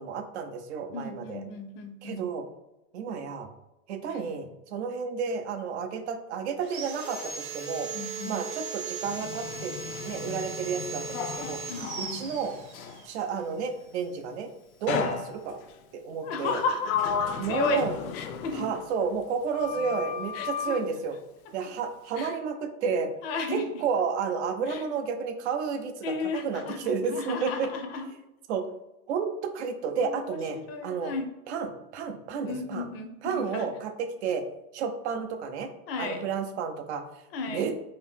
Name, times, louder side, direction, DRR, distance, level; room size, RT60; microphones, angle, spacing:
voice 1, 0.0-1.4 2.0-2.4 2.9-3.5 3.9-7.9 8.2-9.7 10.0-11.6 12.0-12.6 13.1-14.5 14.8-15.6 15.9-16.6 17.4-17.9 18.5-21.2 21.5-23.1 23.5-27.7 28.5-28.6 29.1-31.1 31.5-32.9 33.2-33.9 34.2-34.4 34.7-35.7 36.0-37.0 37.5-37.7, right 6 dB, 50° right, 7 dB, 0.5 m, -31 dB
voice 2, 0.9-2.2 4.1-4.3 7.9-8.3 11.7-12.2 16.2-17.8 18.1-18.7 20.3-20.8 22.2-22.4 23.2-23.6 24.7-24.9 26.0-26.8 27.1-28.1 30.0-31.3 32.4-33.6 35.9-36.2 37.3-37.7, left 4 dB, 45° left, 6 dB, 0.6 m, -34 dB
Sawing, 6.6-13.1, right 4 dB, 35° right, 1.0 m, -38 dB
Sliding door, 9.0-13.1 14.9-15.8 16.4-19.3 19.5-20.9, left 7 dB, 85° left, 0.6 m, -34 dB
2.8 x 2.7 x 3.5 m, 0.95 s
supercardioid pair, 155°, 43 cm